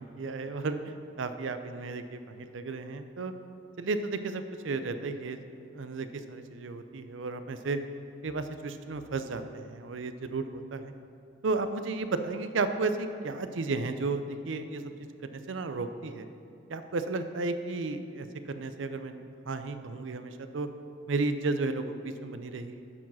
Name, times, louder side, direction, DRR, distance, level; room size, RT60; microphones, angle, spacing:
voice 1, 0.0-3.3 3.8-5.5 5.7-7.8 8.2-10.9 11.4-14.9 15.2-16.3 16.7-20.7 21.1-22.8, right 3 dB, 80° right, 9 dB, 0.5 m, -33 dB
9.7 x 4.7 x 6.2 m, 2.6 s
head